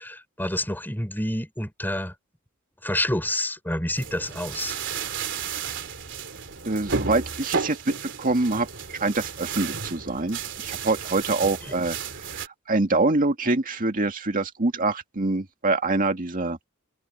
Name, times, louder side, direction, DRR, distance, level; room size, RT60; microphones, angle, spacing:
voice 1, 0.0-2.1 2.8-4.7, left 1 dB, 10° left, 4.9 m, -28 dB
sound 1, 4.0-12.5, right 6 dB, 60° right, 3.1 m, -33 dB
voice 2, 6.6-12.0 12.2-16.7, right 2 dB, 40° right, 2.0 m, -25 dB
open air
head